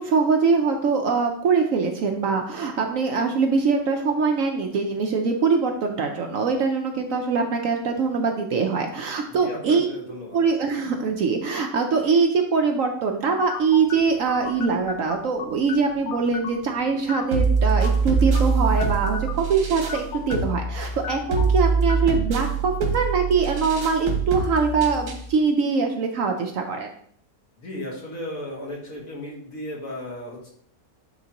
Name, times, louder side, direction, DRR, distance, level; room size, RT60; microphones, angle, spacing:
voice 1, 0.0-9.9 10.3-26.9, right 5 dB, 65° right, 3 dB, 0.9 m, -23 dB
voice 2, 9.4-10.4 27.6-30.5, left 1 dB, 55° left, -3 dB, 2.0 m, -35 dB
sound 1, 13.5-23.0, left 7 dB, 90° left, 1.3 m, -38 dB
sound 2, 17.3-25.3, right 5 dB, 85° right, 1.6 m, -24 dB
10.0 x 3.4 x 2.9 m, 0.62 s
omnidirectional pair, 1.7 m